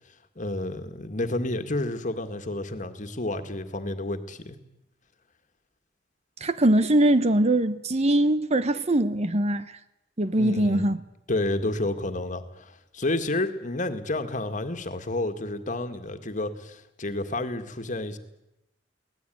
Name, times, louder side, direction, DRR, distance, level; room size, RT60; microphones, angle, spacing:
voice 1, 0.4-4.6 10.4-10.9 11.3-18.2, left 2 dB, 45° left, 2.0 m, -30 dB
voice 2, 6.4-9.7 10.2-11.0, right 1 dB, 35° right, 0.9 m, -22 dB
24.0 x 18.5 x 9.3 m
head